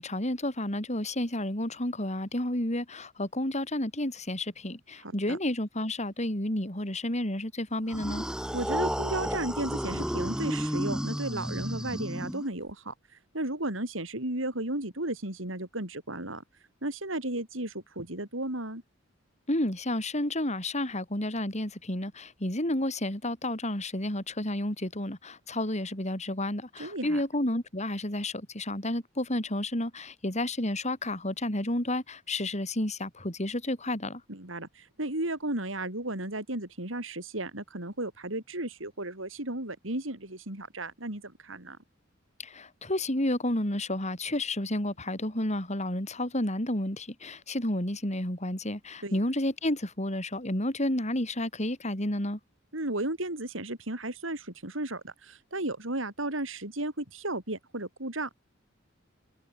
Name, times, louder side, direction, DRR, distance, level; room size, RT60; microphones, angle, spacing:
voice 1, 0.0-8.3 19.5-34.2 42.4-52.4, left 1 dB, 35° left, 6.0 m, -31 dB
voice 2, 5.0-5.4 8.5-12.9 13.3-16.4 16.8-18.8 26.8-27.2 34.3-41.8 49.0-49.2 52.7-58.4, right 1 dB, 80° right, 5.9 m, -34 dB
sound 1, 7.9-12.7, equal, 5° right, 2.8 m, -32 dB
head